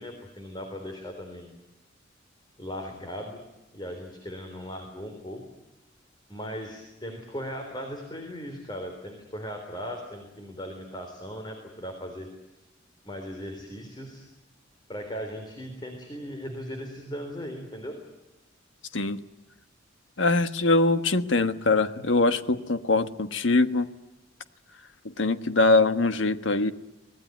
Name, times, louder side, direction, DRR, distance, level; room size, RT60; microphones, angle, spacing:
voice 1, 0.0-1.5 2.6-3.4 3.7-5.4 6.3-12.3 13.0-14.2 14.9-18.0, equal, 25° left, 4 dB, 3.7 m, -38 dB
voice 2, 20.2-23.9 25.0-26.7, left 3 dB, 75° left, 11 dB, 1.4 m, -23 dB
25.5 x 19.5 x 9.4 m, 1.0 s
head